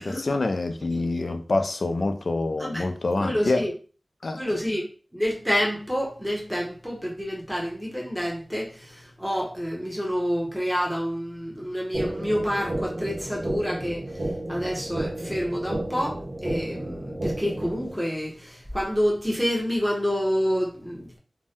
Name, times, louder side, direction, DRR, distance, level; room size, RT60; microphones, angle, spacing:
voice 1, 0.0-3.7 4.2-4.4, left 2 dB, 65° left, 0.4 m, -26 dB
voice 2, 3.2-3.7 4.3-14.0 14.5-21.2, equal, ahead, 0.9 m, -28 dB
sound 1, 11.9-17.9, right 1 dB, 55° right, 0.8 m, -32 dB
2.6 x 2.1 x 3.4 m
wide cardioid pair, 75°, 0 cm